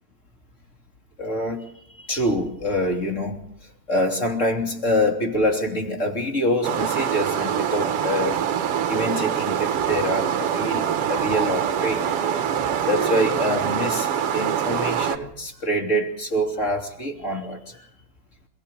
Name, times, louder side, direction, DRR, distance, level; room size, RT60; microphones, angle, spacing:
voice 1, 1.2-1.7 2.1-3.4 3.9-8.4 8.9-12.1 12.9-17.9, equal, 25° left, 3 dB, 3.1 m, -25 dB
sound 1, 6.6-15.2, right 9 dB, 60° right, 2.0 m, -24 dB
27.5 x 16.0 x 6.9 m, 0.76 s
omnidirectional pair, 3.4 m